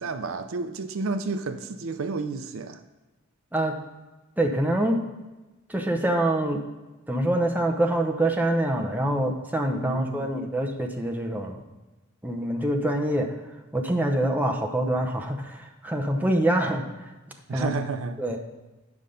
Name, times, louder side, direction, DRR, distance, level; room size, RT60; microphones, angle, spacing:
voice 1, 0.0-2.8 9.8-10.3 17.5-18.2, right 4 dB, 65° right, 9 dB, 0.5 m, -31 dB
voice 2, 4.4-5.0 5.7-6.6 7.1-11.6 12.2-13.3 13.7-17.1 17.5-17.7 18.2-18.4, right 1 dB, 10° right, 2 dB, 0.8 m, -25 dB
9.7 x 5.5 x 5.1 m, 1.1 s
head